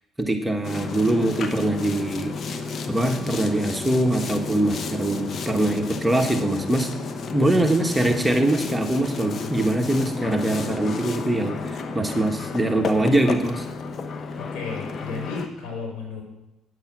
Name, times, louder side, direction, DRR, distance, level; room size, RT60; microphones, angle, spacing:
voice 1, 0.2-2.3 2.9-6.9 7.3-13.7, right 1 dB, 10° right, 4 dB, 1.4 m, -23 dB
Boat Water vehicle, 0.6-15.5, left 4 dB, 50° left, 1.1 m, -32 dB
voice 2, 7.4-7.8 14.4-16.2, left 4 dB, 70° left, 0 dB, 3.9 m, -34 dB
9.3 x 8.3 x 6.2 m, 0.93 s
hypercardioid pair, 55°, 0 cm